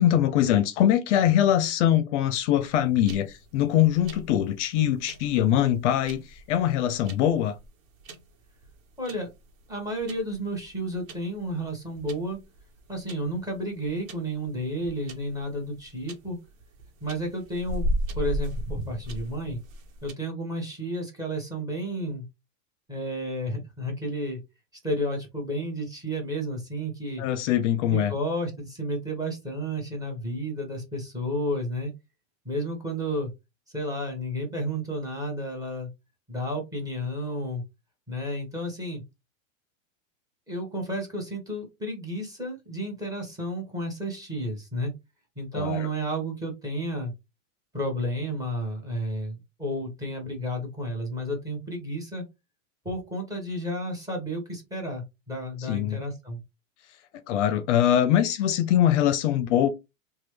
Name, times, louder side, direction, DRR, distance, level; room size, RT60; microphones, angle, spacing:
voice 1, 0.0-7.6 27.2-28.1 45.5-45.9 55.7-56.0 57.3-59.7, left 11 dB, 60° left, 0.5 m, -23 dB
sound 1, 2.5-20.1, equal, 75° right, 1.0 m, -37 dB
voice 2, 9.0-9.3 9.7-12.4 12.9-16.4 17.0-19.6 20.0-22.2 22.9-24.4 24.8-27.2 27.9-31.9 32.4-33.3 33.7-35.9 36.3-37.6 38.1-39.0 40.5-44.9 45.3-47.1 47.7-52.2 52.8-56.4, equal, 10° right, 1.3 m, -32 dB
3.1 x 2.2 x 3.1 m
supercardioid pair, 130°, 41 cm